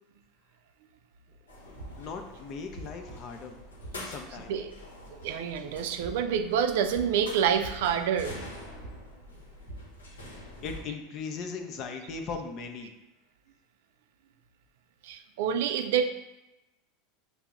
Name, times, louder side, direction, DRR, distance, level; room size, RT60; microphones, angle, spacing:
sound 1, 1.5-10.8, equal, 85° left, 0.8 m, -44 dB
voice 1, 2.0-3.6 4.0-4.5 10.6-12.9, left 5 dB, 50° left, 5 dB, 0.5 m, -38 dB
voice 2, 4.3-4.7 5.1-8.4 15.0-16.0, right 8 dB, 70° right, 8 dB, 0.3 m, -27 dB
5.5 x 2.0 x 3.6 m, 0.98 s
hypercardioid pair, 90°, 0 cm